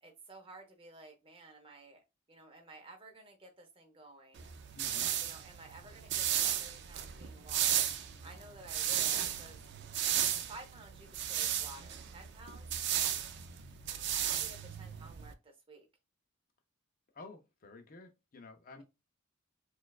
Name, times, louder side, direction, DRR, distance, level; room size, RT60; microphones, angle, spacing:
voice 1, 0.0-2.0 2.3-4.5 5.2-7.8 8.2-9.6 10.5-12.7 14.3-15.9, right 2 dB, 25° right, 0.7 m, -53 dB
sound 1, 4.4-15.3, right 10 dB, 50° right, 0.3 m, -35 dB
voice 2, 4.7-5.1 17.1-18.8, left 3 dB, 40° left, 0.5 m, -52 dB
4.2 x 2.3 x 2.3 m
head